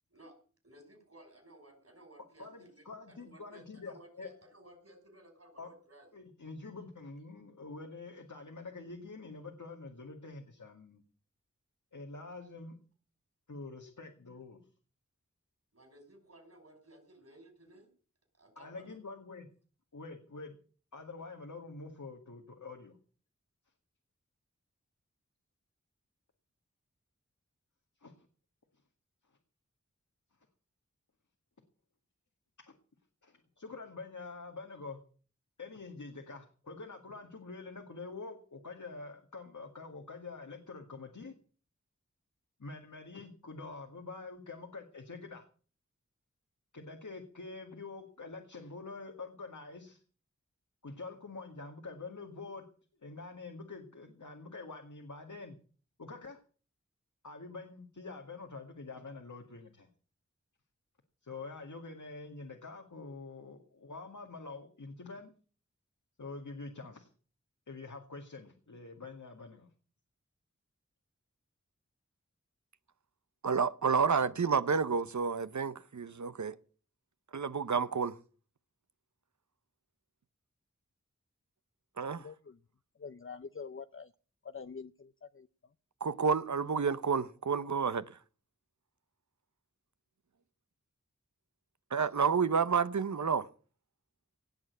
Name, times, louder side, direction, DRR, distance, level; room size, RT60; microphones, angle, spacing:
voice 1, 0.6-6.1 15.7-17.9 18.3-19.0, right 1 dB, 60° right, 5.8 m, -57 dB
voice 2, 2.4-4.3 5.6-5.7 6.1-11.0 11.9-12.8 13.5-14.6 18.6-19.5 19.9-20.6 20.9-23.0 28.0-28.3 32.7-32.8 33.2-35.0 35.6-41.3 42.6-45.4 46.7-50.0 50.8-52.7 53.0-55.6 56.0-56.4 57.2-59.9 61.2-65.3 66.2-67.1 67.7-69.7, left 3 dB, 85° left, 2.1 m, -46 dB
voice 3, 73.4-76.6 77.3-78.2 82.0-82.3 86.0-88.0 91.9-93.5, right 5 dB, 75° right, 0.8 m, -30 dB
voice 4, 82.1-82.6 83.0-84.1 84.4-85.5, left 5 dB, 45° left, 0.6 m, -46 dB
18.0 x 6.7 x 9.3 m
wide cardioid pair, 50°, 29 cm